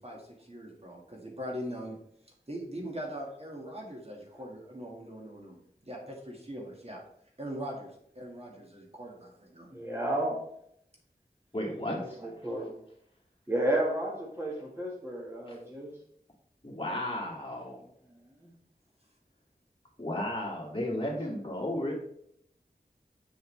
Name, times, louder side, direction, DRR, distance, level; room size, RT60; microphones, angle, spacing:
voice 1, 0.0-2.0 2.5-5.6 5.8-7.0 7.4-9.7, equal, 40° right, -1 dB, 1.8 m, -41 dB
voice 2, 9.7-10.4 11.8-12.7 13.5-15.9 18.4-18.5, right 1 dB, 15° right, -3 dB, 1.4 m, -32 dB
voice 3, 11.5-12.2 15.5-15.6 16.6-17.8 20.0-21.9, left 1 dB, 30° left, -3 dB, 2.2 m, -34 dB
6.6 x 6.5 x 3.2 m, 0.71 s
wide cardioid pair, 45°, 17 cm